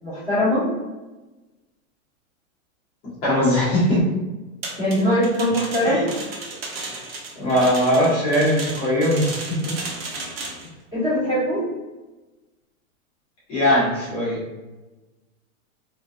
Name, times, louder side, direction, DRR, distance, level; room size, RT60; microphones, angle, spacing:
voice 1, 0.0-0.7 4.8-6.0 6.5-6.6 10.9-11.6, equal, 10° right, -11 dB, 0.9 m, -21 dB
voice 2, 3.2-4.0 5.8-6.0 7.4-9.7 13.5-14.4, equal, 15° left, -10 dB, 0.6 m, -20 dB
sound 1, 4.6-10.7, right 3 dB, 45° right, 0.5 m, -34 dB
2.6 x 2.2 x 2.3 m, 1.1 s
hypercardioid pair, 165°, 41 cm